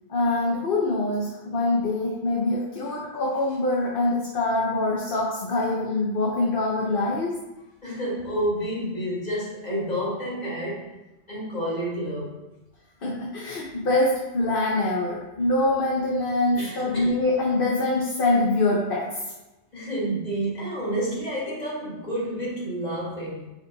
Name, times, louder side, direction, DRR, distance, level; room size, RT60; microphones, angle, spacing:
voice 1, 0.1-7.4 13.0-19.0, left 2 dB, 55° left, -3 dB, 1.1 m, -24 dB
voice 2, 7.8-10.9 11.3-12.4 16.5-17.1 19.7-23.5, right 1 dB, 40° left, -5 dB, 1.9 m, -29 dB
5.3 x 5.0 x 4.0 m, 1.0 s
omnidirectional pair, 1.1 m